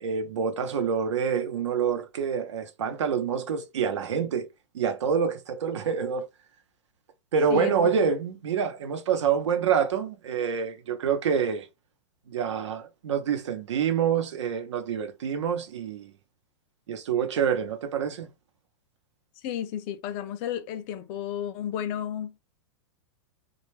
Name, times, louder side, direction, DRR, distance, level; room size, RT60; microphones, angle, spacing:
voice 1, 0.0-4.5 4.7-6.3 7.3-11.7 12.3-16.1 16.9-18.3, right 7 dB, 90° right, 0.7 m, -27 dB
voice 2, 19.4-22.3, left 10 dB, 35° left, 0.4 m, -32 dB
2.3 x 2.1 x 3.0 m
hypercardioid pair, 145°, 15 cm